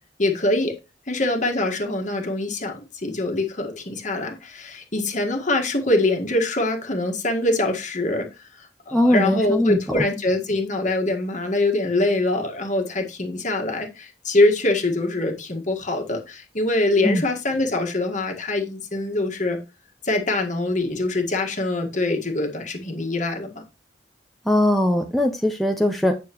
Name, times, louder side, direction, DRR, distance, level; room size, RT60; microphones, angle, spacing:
voice 1, 0.2-0.7 1.1-19.6 20.0-23.6, left 2 dB, 45° left, 3 dB, 1.7 m, -24 dB
voice 2, 8.9-9.8 17.0-17.2 24.5-26.1, left 1 dB, ahead, 2 dB, 0.7 m, -20 dB
8.9 x 6.8 x 3.0 m, 0.27 s
head